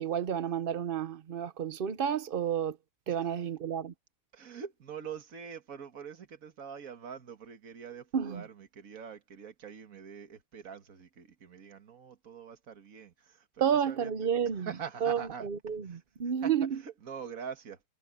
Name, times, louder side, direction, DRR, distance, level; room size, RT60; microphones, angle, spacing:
voice 1, 0.0-2.8 3.1-3.9 8.1-8.4 13.6-14.7 15.0-16.8, right 8 dB, 85° right, 0.4 m, -31 dB
voice 2, 4.3-15.5 15.8-16.0 16.4-17.9, right 7 dB, 45° right, 2.1 m, -44 dB
omnidirectional pair, 2.1 m